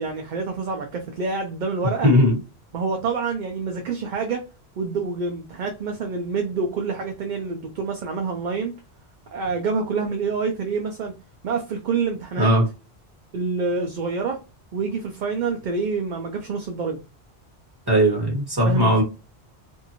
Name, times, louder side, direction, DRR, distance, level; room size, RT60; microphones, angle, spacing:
voice 1, 0.0-2.1 2.7-4.5 4.8-8.7 9.3-11.1 11.4-12.5 13.3-14.4 14.7-17.0 18.6-19.0, right 4 dB, 55° right, 3 dB, 0.6 m, -27 dB
voice 2, 2.0-2.4 12.4-12.6 17.9-19.0, equal, 20° right, -2 dB, 1.5 m, -18 dB
2.6 x 2.5 x 2.8 m, 0.30 s
omnidirectional pair, 1.1 m